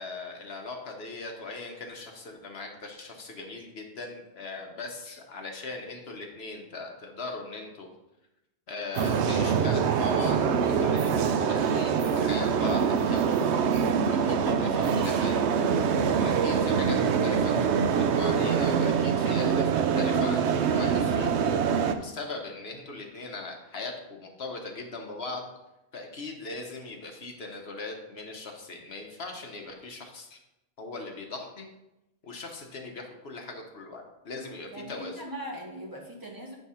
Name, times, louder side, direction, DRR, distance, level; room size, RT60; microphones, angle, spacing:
voice 1, 0.0-7.9 8.7-13.4 14.1-15.3 16.1-25.5 25.9-30.4 30.8-31.7 32.2-35.2, left 3 dB, 70° left, 2 dB, 1.3 m, -39 dB
sound 1, 8.9-21.9, right 6 dB, 90° right, 0.9 m, -24 dB
voice 2, 34.7-36.6, equal, 20° right, -3 dB, 1.4 m, -40 dB
9.0 x 3.6 x 5.6 m, 0.93 s
omnidirectional pair, 1.1 m